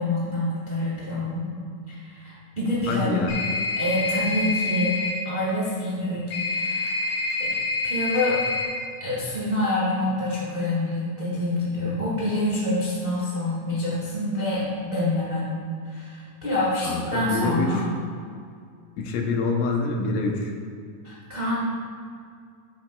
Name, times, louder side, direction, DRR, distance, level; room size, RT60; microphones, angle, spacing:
voice 1, 0.0-1.5 1.9-3.2 3.8-5.0 5.2-7.1 7.4-7.5 7.8-8.4 9.0-15.5 15.8-17.8 21.0-21.6, left 1 dB, 65° right, -8 dB, 0.5 m, -27 dB
voice 2, 2.9-3.3 16.8-17.8 19.0-20.5, left 3 dB, 80° left, 2 dB, 2.4 m, -26 dB
sound 1, 3.3-5.1 6.3-8.7, left 3 dB, 60° left, 2.6 m, -27 dB
10.0 x 7.8 x 2.2 m, 2.2 s
omnidirectional pair, 4.0 m